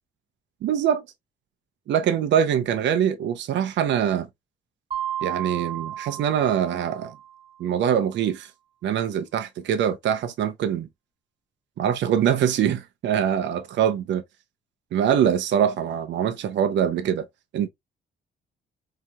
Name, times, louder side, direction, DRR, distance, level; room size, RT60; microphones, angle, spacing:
voice 1, 0.6-1.0 1.9-4.3 5.2-7.1 7.6-8.5 8.8-10.9 11.8-14.2 14.9-17.3 17.5-17.7, right 9 dB, 70° right, 0.6 m, -23 dB
Mallet percussion, 4.9-7.5, right 10 dB, 25° right, 0.9 m, -33 dB
4.2 x 2.8 x 2.2 m
cardioid pair, 90°, 20 cm